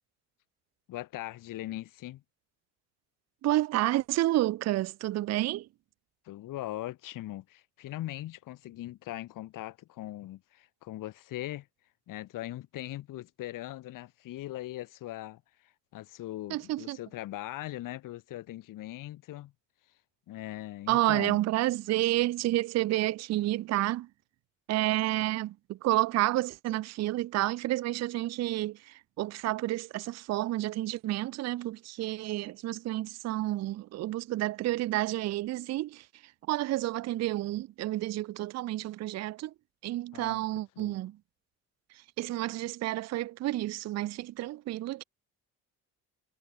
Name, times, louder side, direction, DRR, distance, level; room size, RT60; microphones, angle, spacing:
voice 1, 0.9-2.2 6.2-11.7 12.1-15.4 15.9-19.5 20.3-21.4 40.1-40.4 40.8-41.0, left 15 dB, 45° left, 0.7 m, -40 dB
voice 2, 3.4-5.7 16.5-17.0 20.9-24.1 24.7-39.5 39.8-41.2 42.2-45.0, right 16 dB, 40° right, 0.4 m, -30 dB
hypercardioid pair, 45°, 44 cm